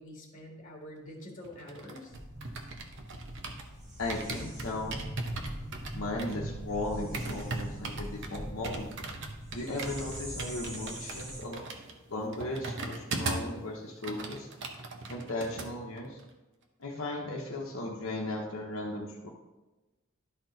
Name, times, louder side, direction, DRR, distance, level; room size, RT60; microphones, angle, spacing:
voice 1, 0.0-2.1, left 1 dB, 40° left, 0 dB, 1.9 m, -46 dB
sound 1, 1.4-3.7 4.1-13.6 13.9-15.7 16.0-16.2, right 3 dB, 60° right, 0.9 m, -39 dB
sound 2, 2.1-11.4, equal, 35° right, 2.1 m, -42 dB
voice 2, 4.0-5.0 5.9-8.9 9.5-11.6 12.1-14.5 15.1-16.2 16.8-19.3, left 2 dB, 70° left, -2 dB, 0.9 m, -36 dB
12.0 x 4.4 x 3.9 m, 1.1 s
head